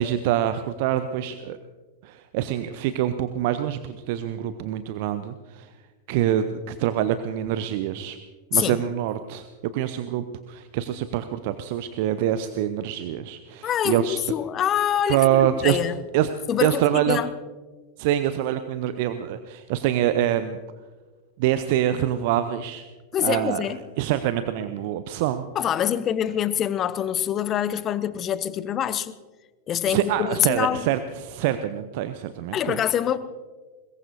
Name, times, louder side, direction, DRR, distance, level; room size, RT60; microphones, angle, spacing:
voice 1, 0.0-1.6 2.0-5.7 6.1-8.2 8.5-14.2 15.1-15.8 16.1-16.3 16.6-17.2 18.0-20.6 21.4-22.9 23.2-23.6 24.0-25.5 29.9-32.8, right 11 dB, 50° right, 11 dB, 0.7 m, -25 dB
voice 2, 13.6-16.0 16.5-16.8 17.1-17.3 23.1-23.8 25.5-29.1 29.7-30.8 32.5-33.2, left 10 dB, 30° left, 16 dB, 0.8 m, -25 dB
21.5 x 21.0 x 2.7 m, 1.3 s
figure-of-eight pair, 90°, 0 cm